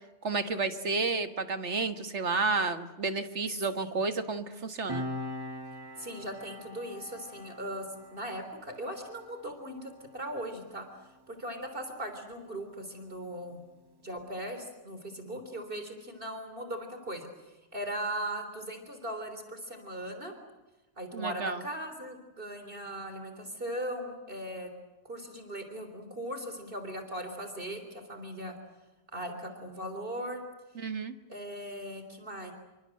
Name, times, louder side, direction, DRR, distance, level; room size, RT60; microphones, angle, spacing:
voice 1, 0.2-5.1 21.1-21.6 30.8-31.2, right 4 dB, 65° right, 9 dB, 2.0 m, -31 dB
Piano, 4.9-11.9 12.2-12.4, left 1 dB, 20° right, 2.0 m, -43 dB
voice 2, 6.0-10.9 11.3-13.6 14.0-17.3 17.7-20.3 21.0-24.7 25.0-28.5 29.1-30.4 31.3-32.5, right 1 dB, 45° right, 7 dB, 3.8 m, -39 dB
28.0 x 24.5 x 7.8 m, 1.1 s
omnidirectional pair, 1.3 m